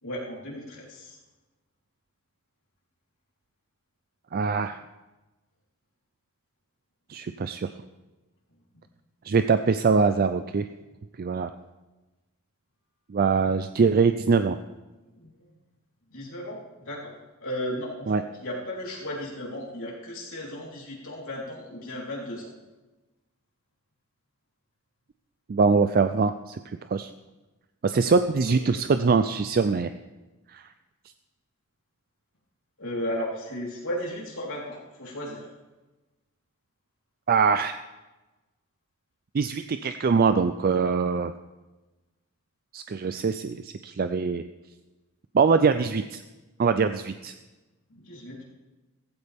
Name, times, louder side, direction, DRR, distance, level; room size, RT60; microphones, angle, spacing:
voice 1, 0.0-1.2 15.1-15.3 16.1-17.1 17.4-18.1 18.4-22.5 28.4-28.8 32.8-35.5 47.9-48.4, equal, 65° left, -4 dB, 3.8 m, -35 dB
voice 2, 4.3-4.8 7.1-7.7 9.3-10.7 11.2-11.5 13.1-14.6 18.1-18.2 25.5-26.6 26.9-27.1 27.8-29.9 30.5-30.6 37.3-37.8 39.3-41.3 42.7-44.4 45.3-46.2 46.6-47.3, right 5 dB, 40° right, 10 dB, 0.4 m, -23 dB
16.0 x 15.0 x 3.6 m, 1.1 s
head